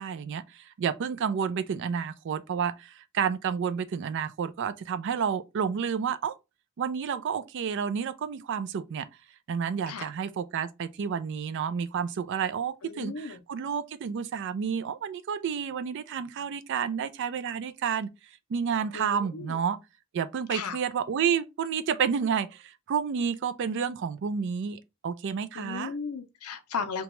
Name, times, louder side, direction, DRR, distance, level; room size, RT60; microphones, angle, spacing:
voice 1, 0.0-6.4 6.8-9.1 9.5-18.1 18.5-19.8 20.1-25.9, right 7 dB, 55° right, 0.3 m, -30 dB
voice 2, 12.8-13.4 18.9-19.6 20.5-20.8 25.5-27.0, left 5 dB, 80° left, 0.5 m, -35 dB
2.8 x 2.2 x 2.9 m
head